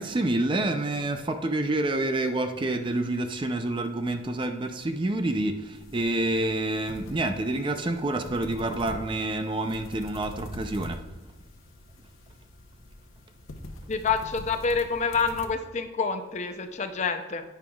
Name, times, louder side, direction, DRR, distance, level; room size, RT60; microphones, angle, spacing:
voice 1, 0.0-11.0, right 2 dB, 25° right, 7 dB, 0.4 m, -28 dB
sound 1, 5.7-15.5, left 1 dB, 90° left, 0.8 m, -44 dB
voice 2, 13.9-17.4, left 5 dB, 35° left, 8 dB, 0.5 m, -27 dB
11.0 x 8.8 x 2.3 m, 1.2 s
head